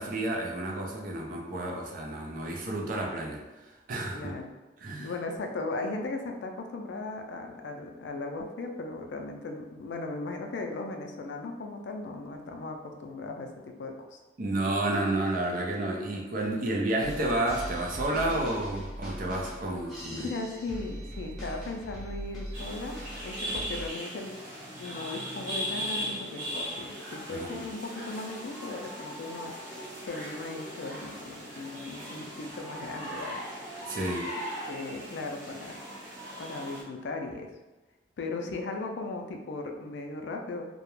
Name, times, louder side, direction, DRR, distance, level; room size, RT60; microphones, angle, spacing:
voice 1, 0.0-3.4 3.9-4.3 4.8-5.1 14.4-20.3 27.3-27.7 33.9-34.3, right 1 dB, 50° right, 0 dB, 0.4 m, -31 dB
voice 2, 4.1-4.5 5.0-14.2 20.2-23.0 23.2-24.3 24.8-29.5 30.0-33.4 34.4-35.8 36.4-37.5 38.2-40.6, left 3 dB, 70° left, 4 dB, 0.4 m, -37 dB
sound 1, 17.0-23.9, equal, ahead, 0.6 m, -40 dB
sound 2, 22.5-36.8, equal, 80° right, 0.7 m, -38 dB
2.3 x 2.0 x 3.0 m, 1.1 s
head